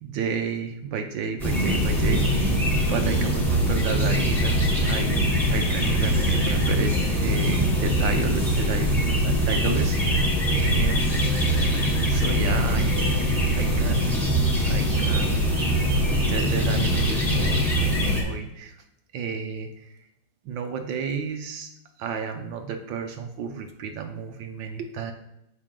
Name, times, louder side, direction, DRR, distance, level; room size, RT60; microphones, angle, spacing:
voice 1, 0.0-2.5 2.8-6.9 7.2-13.1 13.5-14.4 14.6-15.8 16.3-18.7 19.1-19.9 20.4-21.7 22.0-25.1, right 6 dB, 90° right, 4 dB, 1.5 m, -32 dB
sound 1, 1.4-18.2, equal, ahead, 3.0 m, -22 dB
9.7 x 7.8 x 3.7 m, 0.86 s
omnidirectional pair, 2.0 m